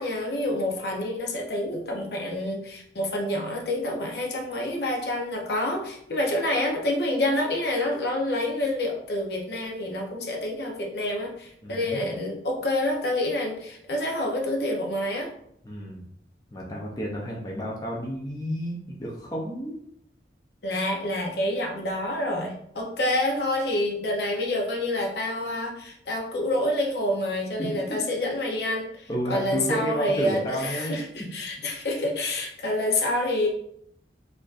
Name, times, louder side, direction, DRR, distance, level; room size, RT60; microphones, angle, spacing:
voice 1, 0.0-15.3 20.6-33.5, left 1 dB, 60° left, 1 dB, 0.7 m, -28 dB
voice 2, 11.6-12.0 15.6-16.1 16.5-19.8 27.6-28.0 29.1-31.0, equal, 20° left, -3 dB, 0.5 m, -31 dB
4.3 x 2.5 x 2.4 m, 0.71 s
head